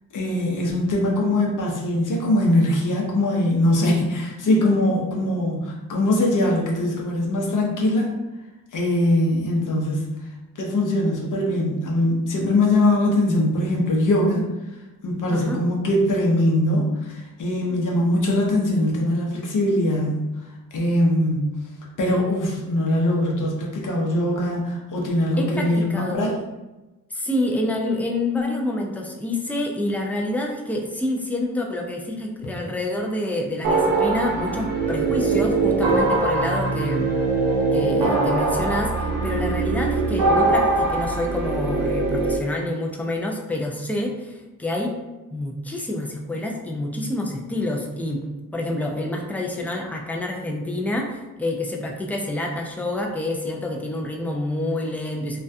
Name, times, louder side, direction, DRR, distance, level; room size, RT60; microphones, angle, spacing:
voice 1, 0.1-8.1 8.7-10.1 10.6-14.5 15.0-20.3 20.7-21.6 22.0-26.3, left 1 dB, 65° left, -2 dB, 0.7 m, -21 dB
voice 2, 15.3-15.6 25.4-26.3 27.1-37.1 37.7-44.9 45.3-48.2 48.5-55.4, left 1 dB, 5° left, 0 dB, 0.3 m, -27 dB
sound 1, 33.6-42.4, right 3 dB, 80° right, 0.6 m, -22 dB
2.3 x 2.1 x 2.6 m, 1.1 s
cardioid pair, 85°, 34 cm